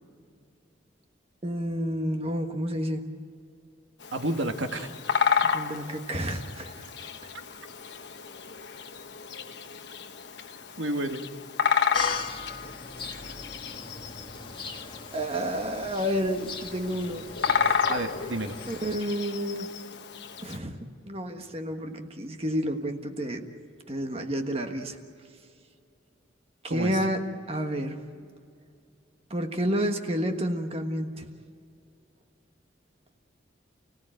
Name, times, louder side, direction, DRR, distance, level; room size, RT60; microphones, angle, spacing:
voice 1, 1.4-3.1 5.5-6.9 15.1-17.3 17.6-17.8 18.7-19.7 20.4-20.8 21.0-23.5 23.9-25.0 26.6-28.0 29.3-31.3, equal, 30° right, 5 dB, 1.4 m, -30 dB
Bird vocalization bird call bird song, 4.0-20.6, left 6 dB, 65° left, 1.1 m, -32 dB
voice 2, 4.1-4.9 10.8-11.2 17.9-18.6 26.7-27.0, right 1 dB, 80° right, 5 dB, 1.7 m, -30 dB
sound 1, 11.9-19.0, left 4 dB, 25° left, 1.5 m, -40 dB
29.5 x 16.5 x 9.0 m, 2.3 s
head